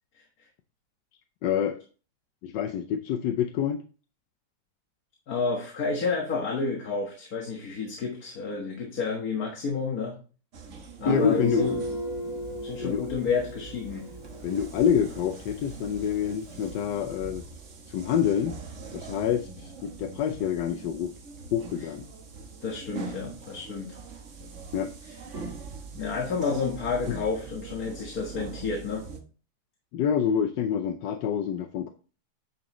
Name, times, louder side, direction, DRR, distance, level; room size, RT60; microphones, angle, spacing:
voice 1, 1.4-1.8 2.4-3.8 11.1-11.9 12.8-13.0 14.4-17.4 17.9-18.5 18.9-21.1 21.5-22.1 24.7-24.9 27.1-27.2 29.9-31.9, left 8 dB, 85° left, 8 dB, 1.3 m, -27 dB
voice 2, 5.3-10.2 11.0-11.7 12.6-14.0 22.6-23.9 25.9-29.1, left 4 dB, 60° left, 1 dB, 1.8 m, -30 dB
sound 1, 10.5-29.2, right 4 dB, 50° right, 1.4 m, -43 dB
Guitar, 11.1-14.6, equal, 25° left, 1.2 m, -32 dB
9.6 x 6.0 x 3.0 m, 0.36 s
omnidirectional pair, 1.9 m